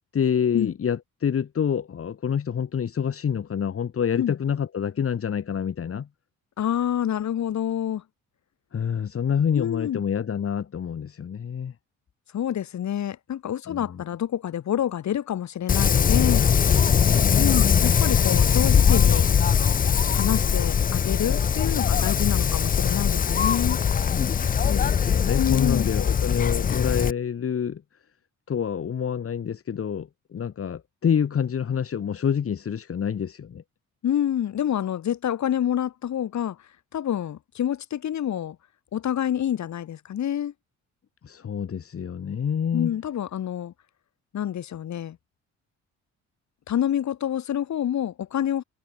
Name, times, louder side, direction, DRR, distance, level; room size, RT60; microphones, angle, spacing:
voice 1, 0.1-6.1 8.7-11.7 13.7-14.0 17.0-17.9 24.5-27.8 28.5-33.6 41.2-42.9, left 7 dB, 50° left, 2.8 m, -27 dB
voice 2, 6.6-8.0 9.5-10.0 12.3-16.5 17.4-19.3 20.1-23.8 25.4-25.9 34.0-36.6 36.9-38.6 38.9-40.5 42.7-43.7 44.3-45.2 46.7-48.6, left 10 dB, 65° left, 7.6 m, -27 dB
Wind, 15.7-27.1, left 7 dB, 30° left, 0.5 m, -21 dB
cardioid pair, 90°, 30 cm